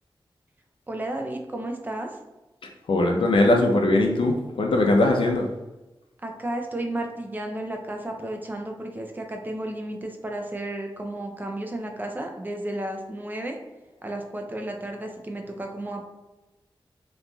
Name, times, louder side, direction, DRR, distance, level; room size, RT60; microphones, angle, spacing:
voice 1, 0.9-2.1 6.2-13.6 14.0-16.1, right 1 dB, 20° right, 2 dB, 0.4 m, -33 dB
voice 2, 2.9-5.5, left 2 dB, 75° left, 2 dB, 0.5 m, -20 dB
3.0 x 2.5 x 2.2 m, 1.0 s
wide cardioid pair, 85°, 9 cm